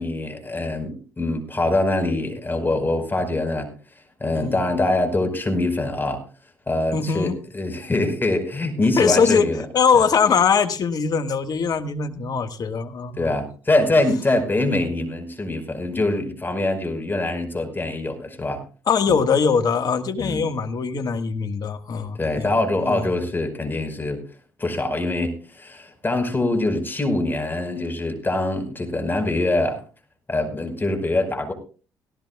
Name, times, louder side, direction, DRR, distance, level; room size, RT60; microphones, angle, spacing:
voice 1, 0.0-3.7 4.2-6.2 6.7-9.6 13.2-18.6 19.1-19.2 20.2-20.4 22.1-24.2 24.6-29.8 30.3-31.5, left 2 dB, 25° left, 6 dB, 5.0 m, -24 dB
voice 2, 6.9-7.4 9.0-9.5 9.7-13.3 18.9-22.5 22.8-23.1, left 6 dB, 55° left, 9 dB, 1.7 m, -21 dB
18.0 x 17.0 x 2.4 m, 0.37 s
hypercardioid pair, 55°, 8 cm